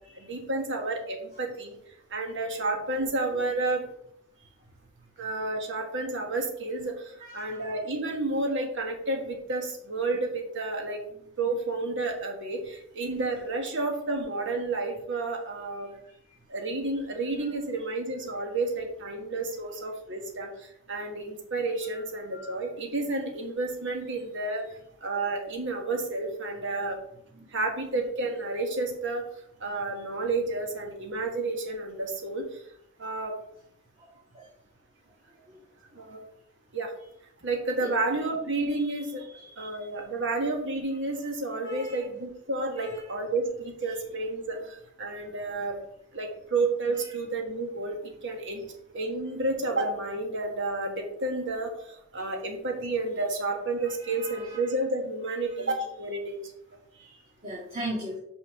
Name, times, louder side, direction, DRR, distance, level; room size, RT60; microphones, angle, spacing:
voice 1, 0.1-1.8 2.1-3.8 5.2-11.0 11.4-15.9 16.5-24.6 25.0-27.0 27.5-29.2 29.6-32.6 33.0-33.3 35.9-36.2 36.7-36.9 37.4-39.2 39.6-45.8 46.1-47.9 48.2-48.6 48.9-56.4, right 2 dB, 60° right, 3 dB, 1.6 m, -31 dB
voice 2, 7.2-7.6 15.9-16.4 21.9-22.0 22.3-22.5 27.4-27.5 34.3-34.5 35.5-35.6 37.8-37.9 38.7-39.8 41.6-42.1 42.8-43.0 47.0-47.1 52.1-52.3 53.8-54.7 55.4-55.6 56.9-58.2, right 1 dB, 30° right, -5 dB, 1.8 m, -40 dB
5.6 x 5.6 x 6.5 m, 0.72 s
head